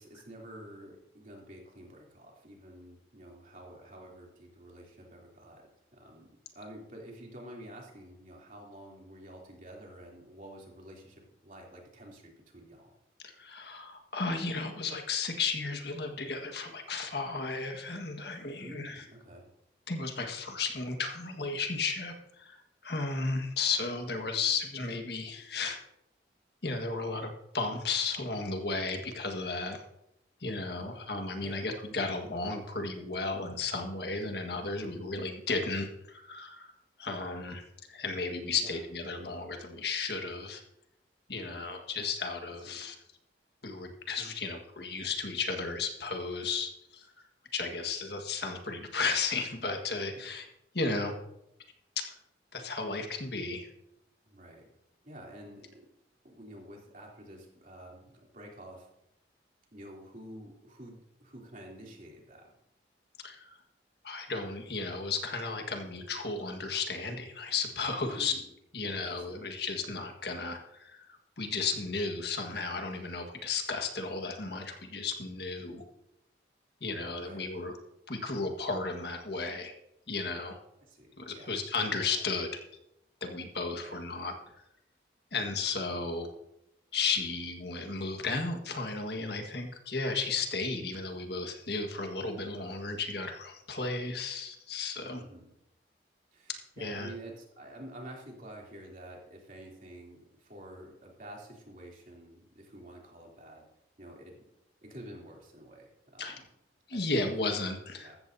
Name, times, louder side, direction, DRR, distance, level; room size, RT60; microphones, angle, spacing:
voice 1, 0.0-5.6 5.9-12.9 18.6-19.5 30.8-31.1 31.4-31.7 38.5-38.8 41.3-41.8 42.7-42.9 50.1-50.5 54.2-54.7 55.0-55.9 56.2-58.9 59.7-62.5 68.0-68.5 68.8-69.4 77.2-77.5 80.8-81.5 82.1-82.2 83.7-83.9 95.1-95.5 96.3-103.7 104.0-104.4 104.8-106.5 106.9-107.2 108.0-108.2, right 1 dB, 45° right, -2 dB, 3.1 m, -49 dB
voice 2, 13.2-19.0 19.9-25.8 26.6-29.8 30.4-36.7 37.0-40.6 41.3-42.9 43.6-47.1 47.5-50.4 50.7-51.1 52.0-52.2 52.5-53.7 63.2-63.6 64.0-68.4 68.7-71.0 71.4-75.8 76.8-77.8 78.1-79.7 80.1-80.5 81.2-82.6 83.2-84.3 85.3-86.3 86.9-95.2 96.8-97.1 106.2-106.4 106.9-108.1, left 4 dB, 65° left, 4 dB, 1.7 m, -34 dB
14.5 x 14.0 x 2.8 m, 0.81 s
head